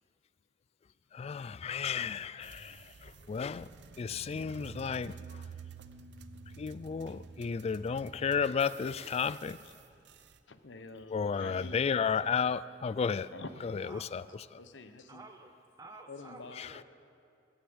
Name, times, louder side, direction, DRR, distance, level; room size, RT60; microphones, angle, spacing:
voice 1, 1.1-3.7 4.0-5.2 6.6-9.6 11.1-13.3 13.6-14.2 14.5-14.6 16.6-16.7, left 6 dB, 35° left, 0.3 m, -33 dB
sound 1, 2.4-10.4, right 5 dB, 65° right, 0.6 m, -50 dB
voice 2, 10.5-11.8 13.3-14.0 14.6-15.2 16.1-16.8, left 3 dB, 75° left, 0.9 m, -47 dB
voice 3, 13.8-14.4 15.1-16.8, right 2 dB, 20° right, 0.6 m, -52 dB
16.0 x 9.8 x 7.9 m
head